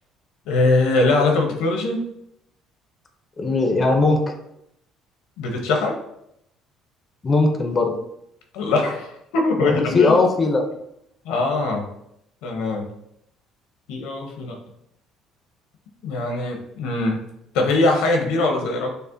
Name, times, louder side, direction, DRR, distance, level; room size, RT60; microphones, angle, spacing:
voice 1, 0.5-2.0 5.4-6.0 8.5-10.1 11.2-11.9 12.4-12.9 13.9-14.6 16.0-17.2 17.5-18.9, left 2 dB, 85° left, 3 dB, 0.7 m, -22 dB
voice 2, 3.4-4.2 7.2-7.9 9.6-10.6, left 3 dB, 25° left, 4 dB, 0.5 m, -19 dB
5.3 x 2.1 x 2.5 m, 0.77 s
cardioid pair, 135°, 0 cm